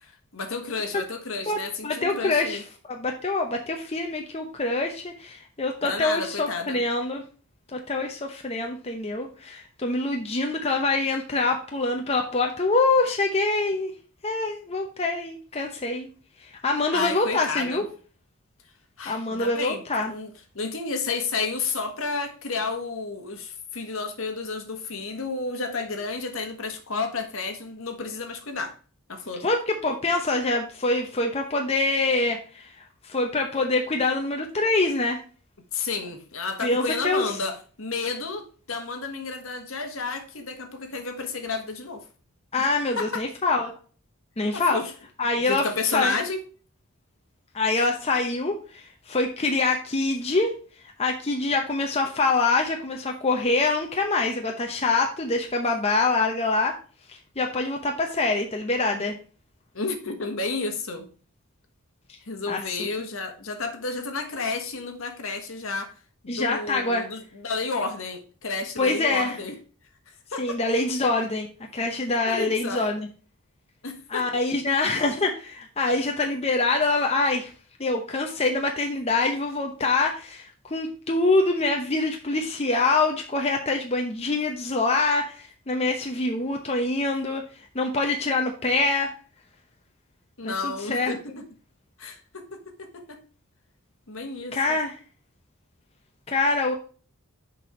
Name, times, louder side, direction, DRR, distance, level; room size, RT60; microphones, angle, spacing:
voice 1, 0.0-2.6 5.8-6.8 16.9-17.8 19.0-20.3 20.5-28.7 29.1-29.4 35.7-42.0 42.6-42.7 43.0-43.2 44.5-44.9 45.5-46.4 59.7-61.1 62.3-65.9 66.2-69.5 70.3-70.6 72.3-72.8 73.8-74.3 90.4-91.5 92.0-93.2 94.1-94.6, left 4 dB, 65° left, 1.5 m, -31 dB
voice 2, 1.5-2.6 2.9-7.2 7.7-13.9 14.2-16.1 16.6-17.8 19.1-20.1 29.4-32.7 33.1-35.2 36.6-37.3 42.5-43.7 44.4-44.8 45.2-46.1 47.5-50.5 51.0-56.8 57.4-59.2 62.5-62.8 66.3-67.0 68.8-69.4 70.4-71.5 71.7-73.1 74.1-77.5 77.8-87.4 87.7-89.1 90.4-91.4 94.5-94.9 96.3-96.7, left 3 dB, 30° left, 0.8 m, -25 dB
6.6 x 5.2 x 4.3 m
head